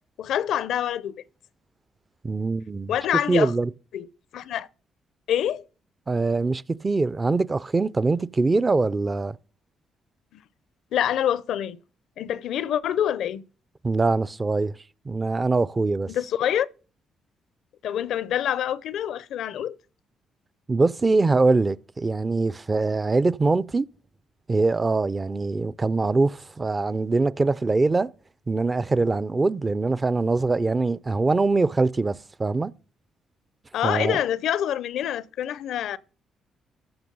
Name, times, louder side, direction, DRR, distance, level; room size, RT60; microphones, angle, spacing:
voice 1, 0.2-1.1 2.9-3.5 3.9-4.1 4.3-4.7 5.3-5.6 10.9-11.8 12.2-13.4 16.1-16.7 17.8-19.7 33.7-36.0, left 10 dB, 75° left, 0.5 m, -26 dB
voice 2, 2.2-2.9 3.3-3.7 6.1-9.4 13.8-14.7 15.1-16.1 20.7-23.9 24.5-28.1 28.5-32.7 33.8-34.2, right 3 dB, 25° right, 0.5 m, -23 dB
14.5 x 6.0 x 5.4 m
cardioid pair, 90°, 0 cm